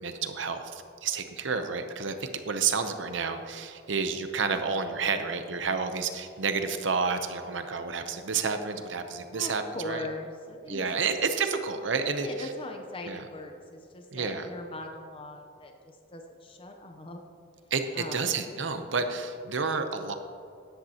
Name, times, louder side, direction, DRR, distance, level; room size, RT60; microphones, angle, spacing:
voice 1, 0.0-10.0 10.7-12.5 13.0-13.2 14.1-14.5 17.7-20.1, right 5 dB, 70° right, 7 dB, 0.7 m, -30 dB
voice 2, 9.3-10.9 12.2-17.2 17.9-18.2, left 1 dB, 25° left, 3 dB, 0.6 m, -40 dB
14.0 x 10.5 x 2.9 m, 2.4 s
head